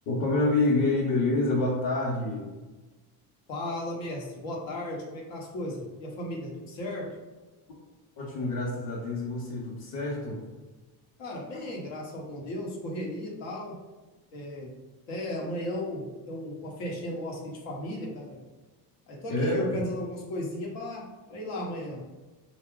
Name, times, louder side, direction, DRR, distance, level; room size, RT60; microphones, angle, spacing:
voice 1, 0.1-2.5 8.2-10.4 19.3-19.8, left 2 dB, 50° left, -5 dB, 1.0 m, -27 dB
voice 2, 3.5-7.1 11.2-13.8 14.3-14.7 15.1-18.4 19.1-22.0, left 1 dB, 80° left, -2 dB, 1.1 m, -35 dB
3.6 x 2.3 x 3.7 m, 1.2 s
supercardioid pair, 85°, 44 cm